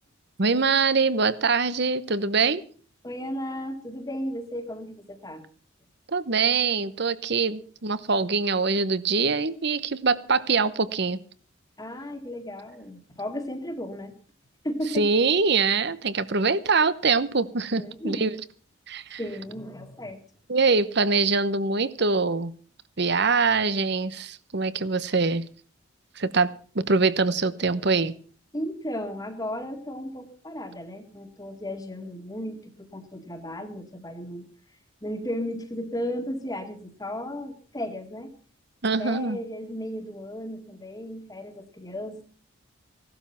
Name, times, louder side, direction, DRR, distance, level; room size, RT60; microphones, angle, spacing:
voice 1, 0.4-2.6 6.1-11.2 14.9-18.4 18.9-19.2 20.5-22.5 23.0-25.4 26.2-26.5 26.7-28.1 38.8-39.4, right 4 dB, 50° right, 16 dB, 0.9 m, -23 dB
voice 2, 3.0-5.4 11.8-14.1 14.6-15.1 17.8-18.3 19.2-20.2 28.5-34.5 35.0-38.3 39.0-42.2, equal, 15° left, 5 dB, 1.9 m, -34 dB
17.0 x 12.5 x 5.8 m, 0.42 s
head